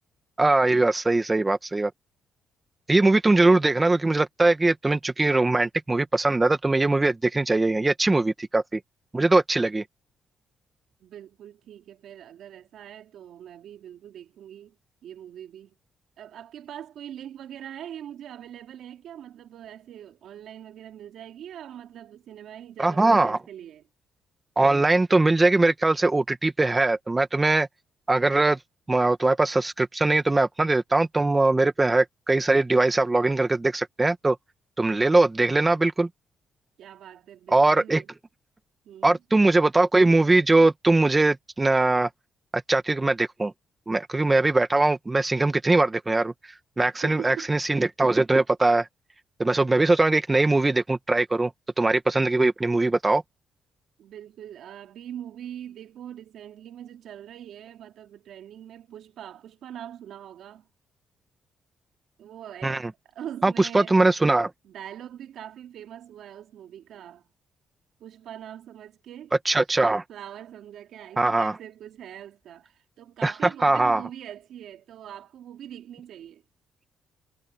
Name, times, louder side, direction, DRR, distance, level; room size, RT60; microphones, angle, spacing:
voice 1, 0.4-1.9 2.9-8.8 9.1-9.8 22.8-23.4 24.5-27.7 28.1-28.6 28.9-34.4 34.8-36.1 37.5-38.0 39.0-42.1 42.5-43.5 43.9-46.3 46.8-48.9 49.4-51.5 51.8-53.2 62.6-62.9 63.4-64.5 69.4-70.0 71.2-71.5 73.2-73.3 73.6-74.0, right 2 dB, 20° right, 1.7 m, -21 dB
voice 2, 11.0-14.8 15.0-15.7 16.2-23.9 36.8-38.1 38.8-39.2 46.8-47.6 54.0-60.7 62.2-64.0 64.6-67.3 68.0-69.3 70.1-76.4, right 10 dB, 75° right, 3.2 m, -42 dB
cardioid pair, 90°, 0 cm